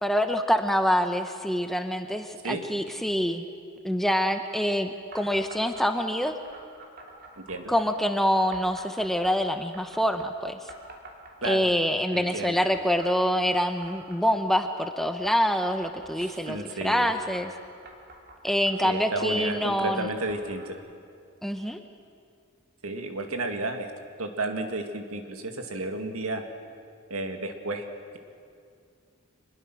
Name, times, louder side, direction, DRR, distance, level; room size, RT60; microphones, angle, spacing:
voice 1, 0.0-3.4 3.8-6.4 7.7-10.6 11.4-17.5 18.4-20.1 21.4-21.8, equal, ahead, 7 dB, 0.8 m, -26 dB
sound 1, 5.1-5.9 6.2-7.9 8.5-10.3 10.7-12.0 12.7-16.6 17.1-20.7, right 2 dB, 45° right, 2.9 m, -48 dB
voice 2, 12.1-12.6 16.2-17.1 18.8-20.8 22.8-23.9 24.2-26.4 27.1-27.9, right 2 dB, 75° right, 5 dB, 2.1 m, -32 dB
25.5 x 21.0 x 6.2 m, 2.4 s
head